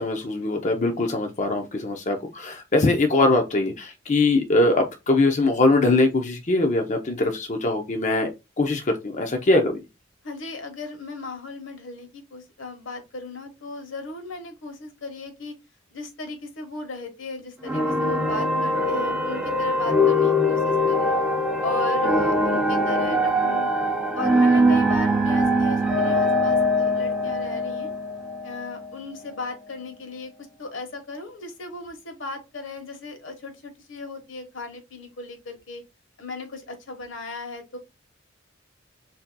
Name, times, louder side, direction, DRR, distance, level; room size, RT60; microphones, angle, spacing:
voice 1, 0.0-8.3 8.6-9.8, left 2 dB, 40° left, 0.6 m, -22 dB
voice 2, 10.2-15.5 15.9-21.2 21.6-23.7 24.1-27.9 28.4-30.3 30.6-35.8 36.2-37.8, left 2 dB, 75° left, 1.2 m, -36 dB
sound 1, 17.6-28.9, equal, 5° right, 0.8 m, -22 dB
6.5 x 2.8 x 2.2 m
head